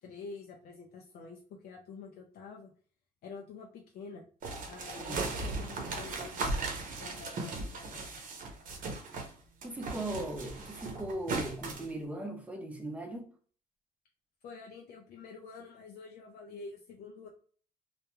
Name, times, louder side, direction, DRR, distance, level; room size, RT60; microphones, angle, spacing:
voice 1, 0.0-2.7 3.2-4.2 4.7-8.2 14.4-17.3, left 4 dB, 65° left, 0.5 m, -48 dB
sound 1, 4.4-9.3 9.6-11.9, right 3 dB, 55° right, 0.8 m, -37 dB
voice 2, 5.0-5.3 9.6-13.3, right 1 dB, 10° right, 0.6 m, -39 dB
2.3 x 2.2 x 3.0 m
cardioid pair, 110°, 17 cm